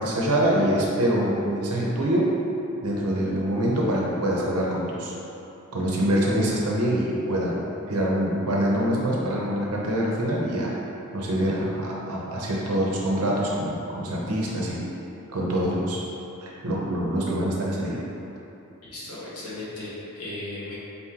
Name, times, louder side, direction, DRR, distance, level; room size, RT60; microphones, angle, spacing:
voice 1, 0.0-2.3 2.8-5.1 5.7-10.7 11.1-14.8 15.3-16.0 16.4-18.0, right 1 dB, 90° right, -4 dB, 0.8 m, -25 dB
voice 2, 18.9-20.8, left 2 dB, 90° left, -9 dB, 1.4 m, -36 dB
4.2 x 3.6 x 2.9 m, 3.0 s
head